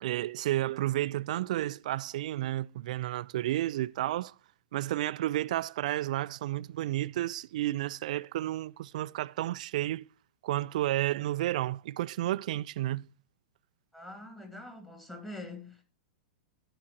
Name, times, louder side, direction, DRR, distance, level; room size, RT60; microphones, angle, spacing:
voice 1, 0.0-4.3 4.7-10.0 10.4-13.1, right 14 dB, 60° right, 0.3 m, -31 dB
voice 2, 13.9-15.8, left 2 dB, 10° left, 2.5 m, -44 dB
12.0 x 4.9 x 4.3 m
hypercardioid pair, 105°, 4 cm